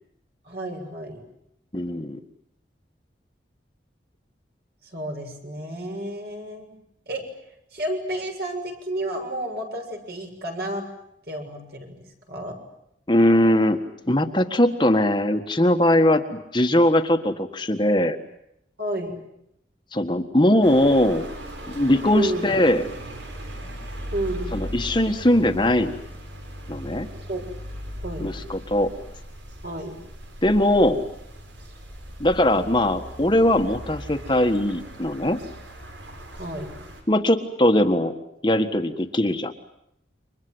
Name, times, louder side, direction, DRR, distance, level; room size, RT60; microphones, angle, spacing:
voice 1, 0.4-1.2 4.8-6.7 7.1-7.2 7.7-10.8 11.3-12.0 12.3-12.5 18.8-19.1 22.1-22.4 24.1-24.5 27.3-27.4 28.0-28.3 29.6-29.9 36.4-36.7, right 1 dB, 55° right, 3 dB, 6.9 m, -31 dB
voice 2, 1.7-2.2 13.1-18.2 19.9-21.3 21.7-22.9 24.5-25.9 26.7-27.1 28.2-28.9 30.4-31.0 32.2-35.4 37.1-38.1 38.4-39.5, left 1 dB, 25° left, 6 dB, 1.5 m, -20 dB
sound 1, 20.6-37.0, equal, 85° right, 6.4 m, -38 dB
29.5 x 25.0 x 7.9 m, 0.78 s
head